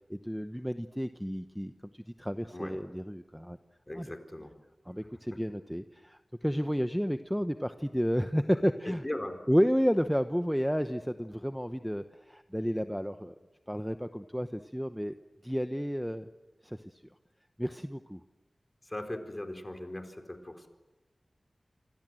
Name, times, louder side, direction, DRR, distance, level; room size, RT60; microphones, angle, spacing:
voice 1, 0.1-3.6 3.9-4.1 4.9-9.0 9.5-13.3 13.7-15.1 15.4-16.3 16.6-17.0 17.6-18.2, equal, ahead, 9 dB, 0.9 m, -31 dB
voice 2, 3.9-4.5 5.3-5.4 8.8-9.4 18.8-20.7, left 1 dB, 25° left, 6 dB, 4.2 m, -39 dB
26.5 x 26.5 x 7.8 m, 1.1 s
wide cardioid pair, 65°, 0 cm